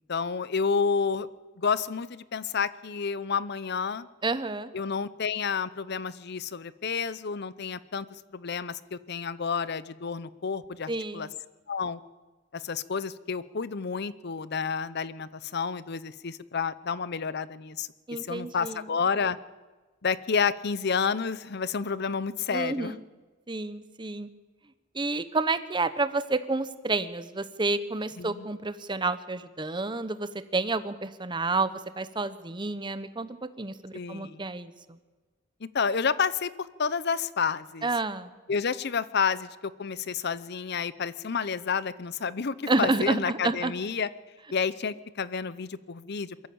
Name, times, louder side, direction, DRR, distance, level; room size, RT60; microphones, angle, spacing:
voice 1, 0.1-1.3 1.6-4.1 4.7-8.1 8.3-11.3 11.7-12.0 12.5-17.9 18.3-19.4 20.0-22.9 28.2-28.5 33.9-34.4 35.6-37.9 38.5-44.1 44.5-46.5, left 5 dB, 55° left, 17 dB, 0.7 m, -30 dB
voice 2, 4.2-4.7 10.9-11.3 18.1-18.8 22.5-23.0 23.5-24.3 24.9-34.7 37.8-38.3 42.7-43.7, right 3 dB, 25° right, 13 dB, 0.9 m, -29 dB
22.5 x 13.5 x 8.7 m, 1.3 s
head